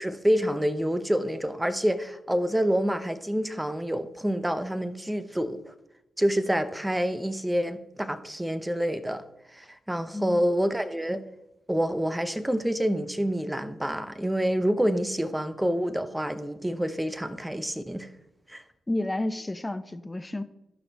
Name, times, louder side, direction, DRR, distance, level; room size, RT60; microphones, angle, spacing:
voice 1, 0.0-5.7 6.2-9.2 9.5-11.2 11.7-18.1 18.5-18.6, equal, 10° right, 12 dB, 0.9 m, -27 dB
voice 2, 10.1-10.4 18.9-20.4, left 1 dB, 20° left, 12 dB, 0.8 m, -31 dB
13.0 x 6.0 x 3.0 m, 0.92 s
hypercardioid pair, 40°, 0 cm